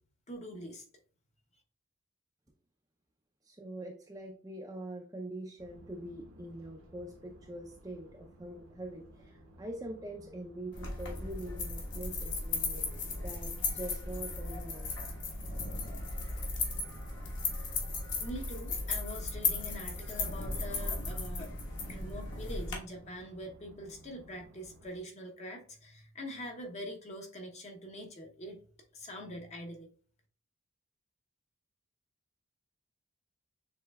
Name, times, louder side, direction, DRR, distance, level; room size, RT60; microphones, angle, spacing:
voice 1, 0.3-0.8 18.2-21.5 21.9-28.6 28.9-29.9, equal, 30° left, 2 dB, 0.7 m, -44 dB
voice 2, 3.5-14.9, right 1 dB, 15° right, 0 dB, 0.4 m, -44 dB
sound 1, 5.6-25.0, right 1 dB, 75° right, 1.0 m, -57 dB
sound 2, 10.7-22.8, left 3 dB, 55° left, 1.3 m, -36 dB
6.8 x 3.1 x 2.2 m, 0.43 s
head